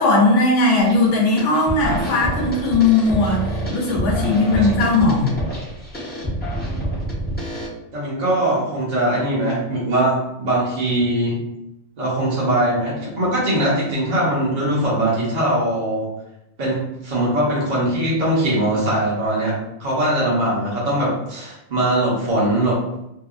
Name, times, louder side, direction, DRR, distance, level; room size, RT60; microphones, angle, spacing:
voice 1, 0.0-5.3, left 3 dB, 70° left, -1 dB, 1.0 m, -18 dB
sound 1, 0.8-1.1 1.4-7.7, equal, 10° left, 0.6 m, -27 dB
voice 2, 7.9-11.4 12.0-16.1 16.6-22.8, right 1 dB, 40° right, -7 dB, 0.8 m, -21 dB
2.7 x 2.3 x 2.4 m, 0.84 s
omnidirectional pair, 1.3 m